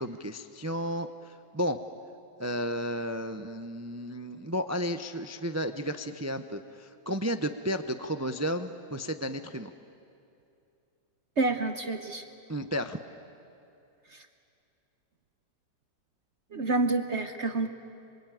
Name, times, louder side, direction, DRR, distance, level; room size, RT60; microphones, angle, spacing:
voice 1, 0.0-1.8 2.4-9.7 12.5-13.0, equal, 25° right, 8 dB, 0.3 m, -33 dB
voice 2, 11.4-12.2 16.5-17.7, right 3 dB, 50° right, 6 dB, 1.1 m, -28 dB
27.0 x 24.0 x 9.2 m, 2.6 s
omnidirectional pair, 1.8 m